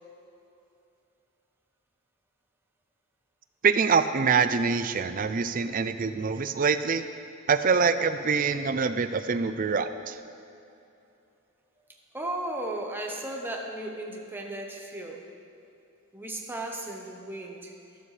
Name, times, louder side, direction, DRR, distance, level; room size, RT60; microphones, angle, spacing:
voice 1, 3.6-7.0 7.5-10.2, right 5 dB, 40° right, 10 dB, 0.4 m, -25 dB
voice 2, 12.1-15.2 16.1-17.7, right 1 dB, 10° right, 0 dB, 0.9 m, -35 dB
12.5 x 12.0 x 3.3 m, 2.7 s
head